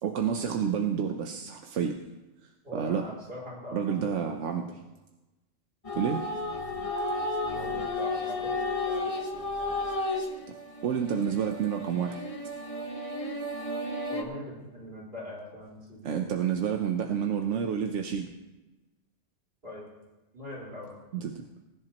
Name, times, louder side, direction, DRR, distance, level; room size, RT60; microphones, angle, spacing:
voice 1, 0.0-2.0 2.7-3.0 3.7-4.7 5.9-6.2 10.8-12.2 16.0-18.3 21.1-21.5, right 7 dB, 90° right, 4 dB, 1.1 m, -29 dB
voice 2, 2.6-4.6 7.5-9.1 14.1-16.3 19.6-19.8 20.3-20.9, left 1 dB, 55° right, -5 dB, 4.6 m, -42 dB
sound 1, 5.8-14.2, left 2 dB, 30° left, 1.2 m, -33 dB
20.5 x 10.5 x 3.0 m, 1.1 s
omnidirectional pair, 1.2 m